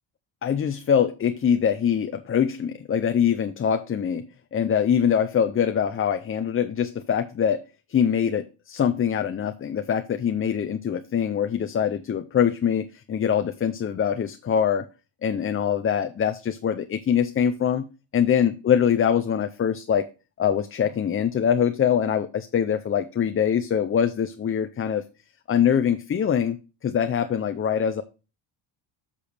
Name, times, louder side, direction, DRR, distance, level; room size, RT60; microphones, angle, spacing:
voice 1, 0.4-4.2 4.5-7.6 7.9-14.9 15.2-17.9 18.1-20.1 20.4-25.0 25.5-28.0, left 8 dB, 25° left, 9 dB, 0.5 m, -23 dB
7.7 x 6.9 x 3.3 m, 0.31 s
cardioid pair, 105°, 50 cm